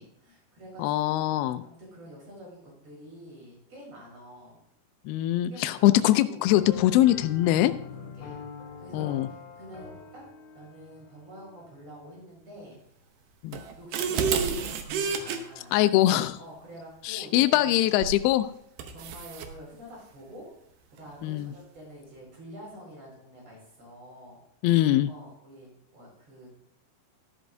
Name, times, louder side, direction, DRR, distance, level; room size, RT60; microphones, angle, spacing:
voice 1, 0.0-1.4 1.6-4.6 5.5-6.5 8.0-8.4 8.8-10.2 10.5-12.8 13.8-15.7 16.4-17.8 18.3-18.4 18.9-20.5 20.9-24.4 25.0-26.5, equal, 40° right, -3 dB, 6.0 m, -47 dB
voice 2, 0.8-1.6 5.1-7.7 8.9-9.3 13.4-13.6 15.7-16.4 17.0-18.5 21.2-21.5 24.6-25.1, left 14 dB, 85° left, 10 dB, 2.2 m, -22 dB
sound 1, 6.5-12.1, left 5 dB, 55° left, 4.4 m, -44 dB
sound 2, 13.5-15.4 18.0-18.2 18.8-19.5, right 6 dB, 75° right, 2.0 m, -29 dB
12.5 x 12.5 x 2.7 m, 0.71 s
omnidirectional pair, 4.9 m